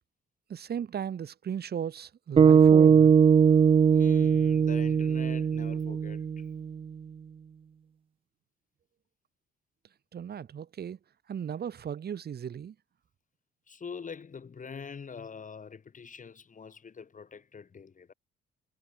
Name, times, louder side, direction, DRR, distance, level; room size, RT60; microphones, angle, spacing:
voice 1, 0.5-3.2 10.1-11.0 11.3-12.7, right 8 dB, 55° right, 2.6 m, -36 dB
sound 1, 2.4-6.7, right 7 dB, 30° right, 0.4 m, -20 dB
voice 2, 3.9-6.5 13.7-18.1, left 6 dB, 40° left, 5.6 m, -44 dB
cardioid pair, 90°, 20 cm